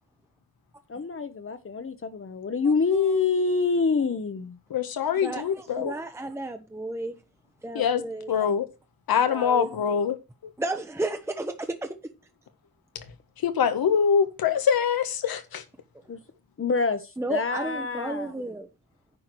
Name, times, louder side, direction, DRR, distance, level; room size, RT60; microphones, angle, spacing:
voice 1, 0.9-4.6 16.1-16.2 16.6-18.3, left 4 dB, 35° left, 1.1 m, -26 dB
voice 2, 4.7-5.9 7.7-8.0 8.3-8.6 9.1-10.2 10.4-10.5 12.9-13.0 13.4-15.6, left 7 dB, 80° left, 1.5 m, -24 dB
voice 3, 5.2-7.2 7.6-8.5 9.3-9.7 10.6-12.0 17.2-18.7, right 2 dB, 5° right, 0.9 m, -33 dB
9.9 x 4.7 x 6.2 m
cardioid pair, 105°, 35 cm